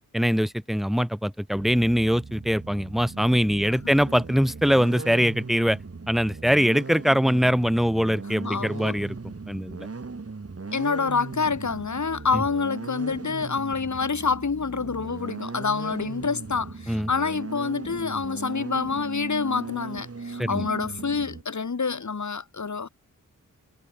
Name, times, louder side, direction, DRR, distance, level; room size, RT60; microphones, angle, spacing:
voice 1, 0.1-5.8 6.1-9.2 9.5-9.9 12.3-12.4 16.9-17.1 20.4-20.7, equal, ahead, 2.2 m, -23 dB
sound 1, 1.5-21.4, right 4 dB, 45° right, 5.7 m, -38 dB
voice 2, 8.4-9.0 10.7-22.9, left 5 dB, 60° left, 5.6 m, -27 dB
cardioid pair, 65°, 33 cm